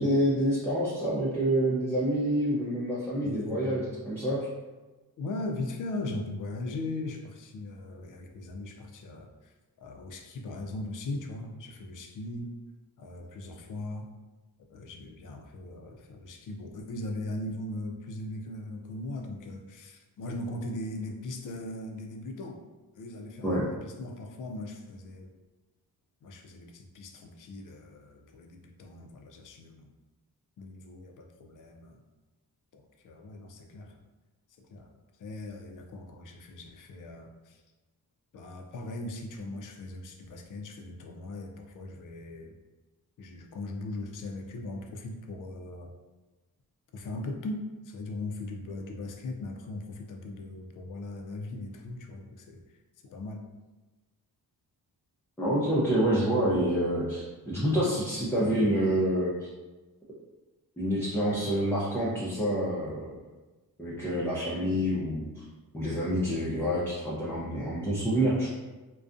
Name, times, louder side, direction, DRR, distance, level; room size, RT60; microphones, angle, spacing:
voice 1, 0.0-4.5 23.4-23.7 55.4-59.3 60.8-63.1 63.8-65.3 65.7-68.5, equal, 5° left, -8 dB, 0.5 m, -27 dB
voice 2, 3.2-4.1 5.2-9.5 9.8-12.5 13.0-14.1 14.7-22.6 22.9-25.3 26.2-29.9 30.6-32.0 32.7-34.0 34.7-34.9 35.2-37.6 38.3-42.6 43.2-45.9 46.9-52.6 53.0-53.4, left 2 dB, 55° left, 3 dB, 0.5 m, -39 dB
2.4 x 2.2 x 2.5 m, 1.2 s
cardioid pair, 90°, 38 cm